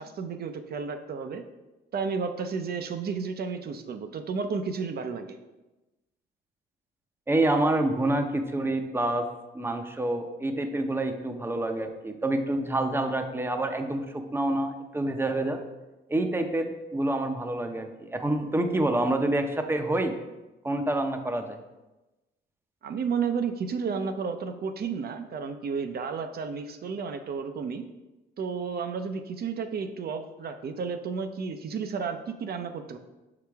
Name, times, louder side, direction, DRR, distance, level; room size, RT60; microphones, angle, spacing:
voice 1, 0.0-1.4 1.9-5.4 22.8-27.8 28.4-33.0, right 5 dB, 50° right, 7 dB, 0.7 m, -32 dB
voice 2, 7.3-9.2 9.5-15.6 16.1-20.1 20.6-21.6, right 1 dB, 10° right, 5 dB, 0.7 m, -27 dB
6.6 x 4.9 x 3.5 m, 1.1 s
cardioid pair, 90°, 20 cm